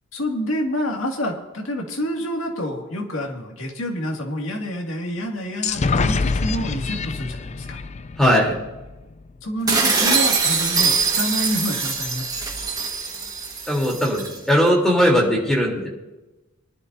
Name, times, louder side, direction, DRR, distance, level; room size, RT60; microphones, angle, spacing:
voice 1, 0.1-7.8 9.4-12.4, equal, 70° left, 1 dB, 2.2 m, -28 dB
sound 1, 5.6-9.3, left 4 dB, 35° left, 0.4 m, -26 dB
voice 2, 8.2-8.5 13.7-15.9, equal, ahead, -2 dB, 3.4 m, -18 dB
sound 2, 9.7-14.4, right 4 dB, 20° right, 1.6 m, -22 dB
23.5 x 11.0 x 2.7 m, 1.1 s
head